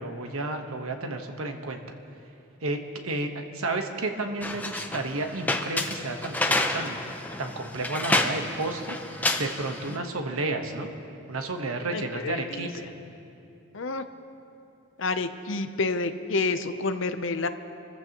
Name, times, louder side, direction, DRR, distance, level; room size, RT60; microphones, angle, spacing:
voice 1, 0.0-1.8 2.6-7.0 7.4-10.9 11.3-12.9, right 2 dB, 80° right, 5 dB, 1.2 m, -32 dB
sound 1, 4.4-10.0, left 2 dB, 10° left, 0.5 m, -29 dB
voice 2, 11.9-12.7 13.7-14.0 15.0-17.5, left 3 dB, 60° left, 9 dB, 0.7 m, -29 dB
26.5 x 14.5 x 3.0 m, 2.8 s
head